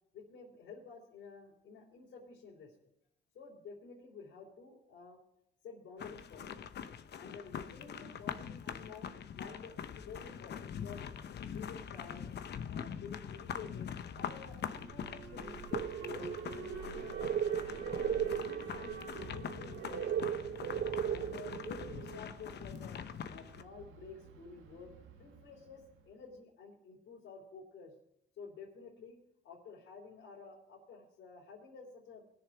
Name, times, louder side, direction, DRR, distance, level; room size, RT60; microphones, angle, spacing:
voice 1, 0.1-2.7 3.3-5.2 5.6-6.7 7.2-11.1 11.5-12.3 12.7-15.6 15.9-17.0 17.7-19.0 19.3-20.3 21.1-23.0 23.3-24.9 25.2-27.9 28.4-29.2 29.4-32.2, left 5 dB, 75° left, -4 dB, 3.5 m, -51 dB
sound 1, 6.0-23.6, left 8 dB, 60° left, 0.9 m, -43 dB
Alarm, 14.2-26.2, right 4 dB, 90° right, 1.5 m, -50 dB
sound 2, 15.7-22.2, right 9 dB, 60° right, 0.6 m, -37 dB
20.0 x 6.9 x 5.0 m, 0.77 s
cardioid pair, 90°, 20 cm